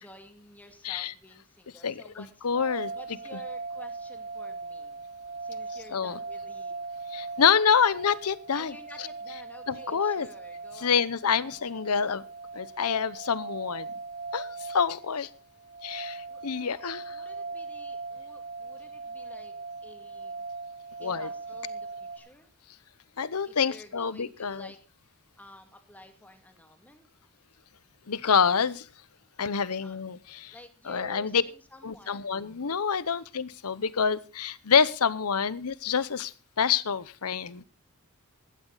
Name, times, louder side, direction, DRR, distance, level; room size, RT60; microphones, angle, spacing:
voice 1, 0.0-2.5 2.9-5.0 5.4-7.0 8.5-11.1 11.5-11.9 16.3-16.8 17.1-19.5 19.8-20.5 21.0-22.5 23.4-27.1 29.8-30.0 30.5-32.5, left 1 dB, 5° left, 5 dB, 2.3 m, -52 dB
voice 2, 1.8-2.9 5.9-6.2 7.1-8.7 9.7-10.3 10.8-12.2 12.5-13.9 14.3-15.3 15.8-17.1 21.0-21.3 23.2-24.7 28.1-28.9 29.4-30.5 30.9-31.4 31.8-37.6, left 6 dB, 80° left, 18 dB, 0.8 m, -27 dB
sound 1, 2.5-22.2, right 3 dB, 45° right, 3.5 m, -40 dB
16.0 x 12.5 x 4.0 m, 0.32 s
head